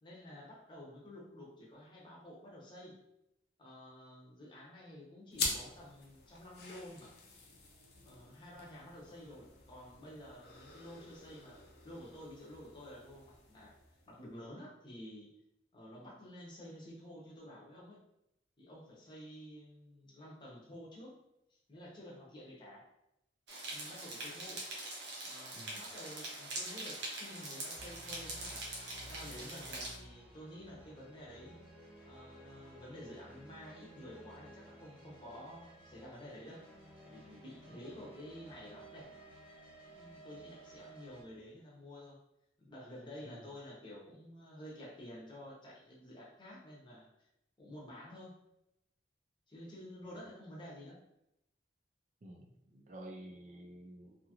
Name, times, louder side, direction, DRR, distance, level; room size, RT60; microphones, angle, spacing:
voice 1, 0.0-3.0 3.6-7.2 8.0-13.7 14.1-15.3 15.7-18.0 18.6-21.1 21.5-22.8 23.7-24.6 25.2-28.7 29.0-31.6 32.0-36.7 37.0-39.1 39.9-42.2 42.6-47.1 47.6-48.3 49.5-51.0, left 1 dB, 25° left, -4 dB, 0.7 m, -51 dB
sound 1, 5.3-14.3, left 3 dB, 60° left, 0.6 m, -45 dB
sound 2, 23.5-30.0, right 1 dB, 80° right, 0.8 m, -43 dB
sound 3, 27.7-41.2, right 1 dB, 10° right, 1.0 m, -55 dB
voice 2, 52.2-54.3, right 1 dB, 45° right, 1 dB, 0.4 m, -51 dB
2.7 x 2.4 x 2.8 m, 0.84 s
head